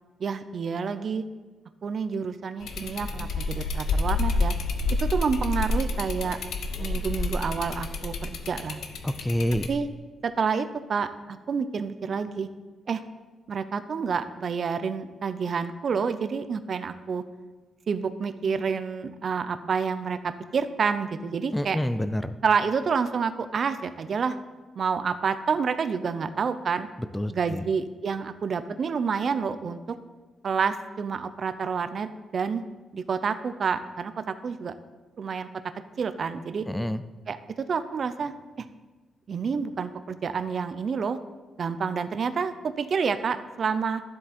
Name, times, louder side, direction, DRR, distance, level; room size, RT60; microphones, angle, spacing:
voice 1, 0.2-1.2 1.8-4.5 5.0-6.4 6.8-8.8 9.7-9.9 10.2-12.5 12.9-13.0 13.5-17.2 17.9-21.8 22.4-24.4 24.8-26.9 27.3-29.8 30.4-32.6 32.9-34.7 35.2-35.5 36.0-36.7 37.3-38.7 39.3-41.2 41.6-44.0, right 5 dB, 50° right, 11 dB, 0.6 m, -28 dB
sound 1, 2.6-9.7, left 3 dB, 80° left, 0.9 m, -29 dB
voice 2, 9.0-9.7 21.5-22.3 27.1-27.6 36.7-37.0, equal, 5° left, 11 dB, 0.4 m, -27 dB
12.5 x 7.6 x 4.3 m, 1.3 s
cardioid pair, 130°, 0 cm